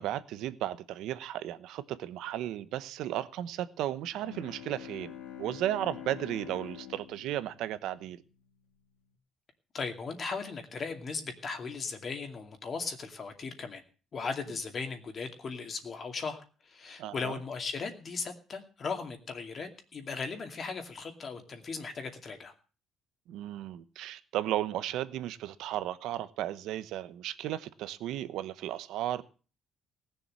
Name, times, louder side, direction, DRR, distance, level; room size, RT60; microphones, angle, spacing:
voice 1, 0.0-5.1 5.4-8.2 17.0-17.4 23.3-29.2, right 12 dB, 75° right, 1.0 m, -35 dB
Bowed string instrument, 4.1-8.7, left 10 dB, 70° left, 2.6 m, -46 dB
voice 2, 9.7-13.8 14.1-22.5, left 4 dB, 35° left, 2.3 m, -37 dB
18.5 x 7.0 x 7.6 m
cardioid pair, 145°, 0 cm